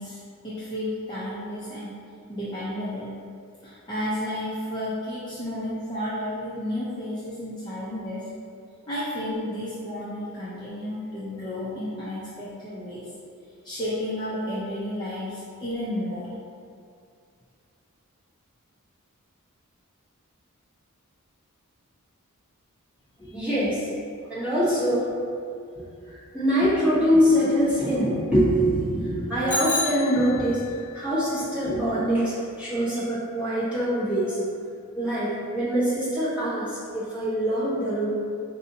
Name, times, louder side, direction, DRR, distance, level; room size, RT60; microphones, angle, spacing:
voice 1, 0.0-2.0 2.3-3.2 3.6-8.3 8.9-13.1 13.6-16.3, left 1 dB, 20° left, -11 dB, 0.6 m, -32 dB
voice 2, 23.2-23.9 24.3-25.1 25.7-25.8 26.3-30.6 30.9-34.4 35.0-38.1, equal, 5° right, -13 dB, 1.4 m, -24 dB
Bicycle bell, 29.5-30.7, left 2 dB, 35° left, 1.0 m, -29 dB
5.2 x 2.7 x 2.7 m, 2.3 s
head